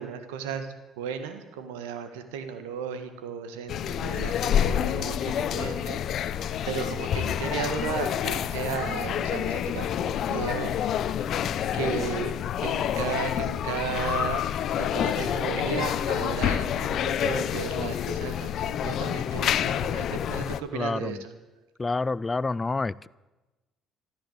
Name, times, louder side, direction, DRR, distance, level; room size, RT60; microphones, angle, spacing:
voice 1, 0.0-6.0 6.7-10.8 11.7-12.3 12.6-14.4 14.8-21.3, right 7 dB, 85° right, 9 dB, 1.6 m, -34 dB
sound 1, 3.7-20.6, left 9 dB, 60° left, 0.7 m, -28 dB
voice 2, 20.7-21.2 21.8-23.1, left 3 dB, 25° left, 22 dB, 0.4 m, -28 dB
14.5 x 12.5 x 8.0 m, 1.1 s
supercardioid pair, 65°, 0 cm